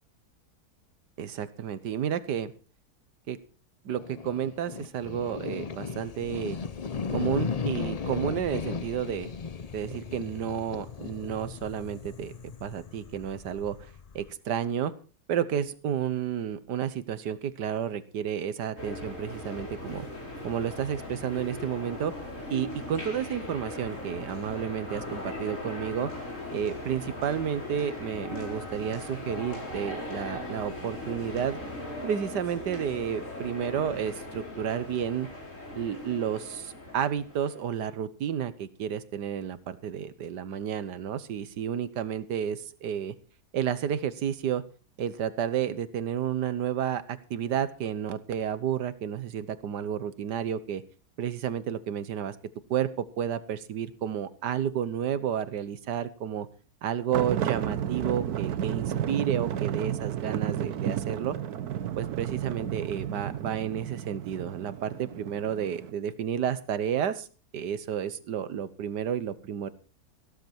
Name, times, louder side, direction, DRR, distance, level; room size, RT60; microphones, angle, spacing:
voice 1, 1.2-2.5 3.3-3.4 3.8-6.6 7.1-9.3 9.7-12.3 12.6-14.9 15.3-20.1 20.4-22.1 22.5-26.1 26.5-31.6 32.0-35.3 35.7-43.1 43.5-44.6 45.0-50.8 51.2-52.4 52.7-52.9 53.2-56.5 56.8-61.4 62.0-67.3 67.5-69.7, right 9 dB, 90° right, 14 dB, 1.6 m, -31 dB
sound 1, 3.9-14.3, left 6 dB, 75° left, 0.3 m, -36 dB
sound 2, 18.8-37.8, left 1 dB, 45° left, 5.4 m, -39 dB
sound 3, 57.1-65.9, right 10 dB, 65° right, 1.3 m, -32 dB
15.5 x 13.0 x 4.5 m, 0.36 s
omnidirectional pair, 1.8 m